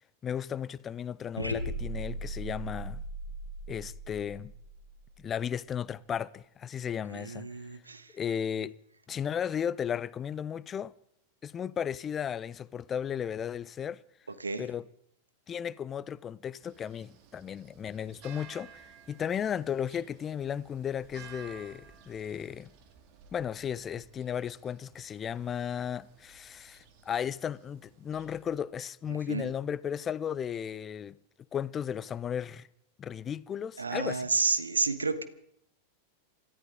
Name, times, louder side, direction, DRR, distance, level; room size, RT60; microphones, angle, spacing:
voice 1, 0.2-3.0 3.7-4.5 5.2-7.5 8.1-8.7 9.1-10.9 11.4-14.0 14.6-14.9 15.5-22.7 23.3-31.2 31.5-32.7 33.0-34.3, left 8 dB, 25° left, 0.5 m, -35 dB
sound 1, 1.4-5.5, right 1 dB, 90° left, 1.5 m, -38 dB
voice 2, 7.1-8.1 14.4-14.7 29.1-29.5 33.8-35.2, right 4 dB, 75° right, 1.2 m, -31 dB
sound 2, 16.6-28.6, right 7 dB, 40° right, 2.0 m, -55 dB
27.0 x 13.5 x 3.7 m
figure-of-eight pair, 90°, 0 cm